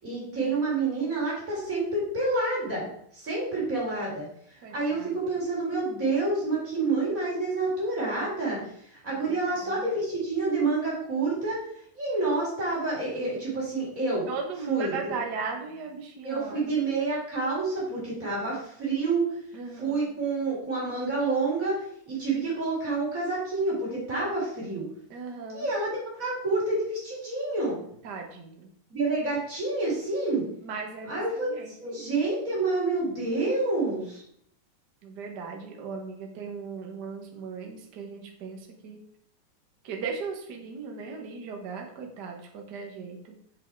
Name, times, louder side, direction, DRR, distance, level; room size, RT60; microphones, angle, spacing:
voice 1, 0.0-4.3 4.7-11.6 12.0-14.3 14.7-15.1 16.2-19.3 19.7-21.8 22.1-24.9 25.5-27.8 28.9-30.4 31.1-34.2, right 3 dB, 25° right, -5 dB, 4.4 m, -28 dB
voice 2, 4.6-5.1 9.3-9.9 14.3-16.7 19.5-20.1 25.1-25.7 28.0-28.7 30.6-32.0 35.0-39.0 39.8-43.3, right 5 dB, 45° right, 2 dB, 1.4 m, -37 dB
7.8 x 7.7 x 4.7 m, 0.66 s
omnidirectional pair, 3.8 m